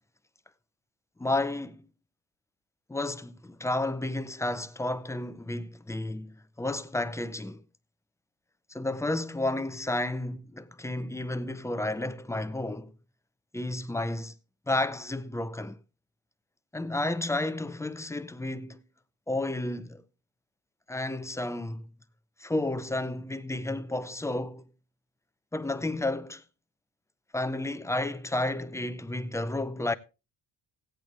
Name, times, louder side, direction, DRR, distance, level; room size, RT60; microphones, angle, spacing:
voice 1, 1.2-1.8 2.9-7.6 8.7-12.9 13.5-14.3 14.7-15.8 16.7-18.8 19.3-20.0 20.9-21.9 22.4-24.6 25.5-26.4 27.3-29.9, left 2 dB, 5° left, 0.6 m, -31 dB
17.0 x 8.5 x 3.4 m
cardioid pair, 105°, 45 cm